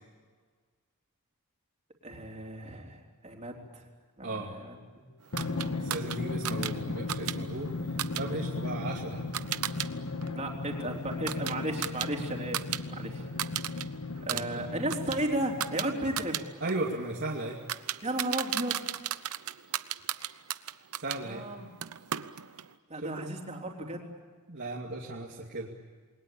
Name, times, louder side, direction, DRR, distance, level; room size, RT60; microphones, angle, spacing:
voice 1, 2.0-3.9 4.2-5.1 10.3-13.3 14.2-16.4 18.0-18.8 21.2-21.7 22.9-24.1, right 1 dB, 30° right, 1 dB, 3.8 m, -35 dB
Drum, 5.3-16.4, left 3 dB, 70° left, 1.6 m, -36 dB
sound 1, 5.4-9.9 10.2-12.8 13.1-13.8 14.2-21.2 21.8-22.7, right 11 dB, 75° right, 0.8 m, -36 dB
voice 2, 5.8-7.7 8.1-9.2 14.3-14.7 16.6-17.6 21.0-21.4 23.0-23.1 24.5-25.7, right 2 dB, 55° right, -2 dB, 2.5 m, -36 dB
28.5 x 21.5 x 8.6 m, 1.5 s
head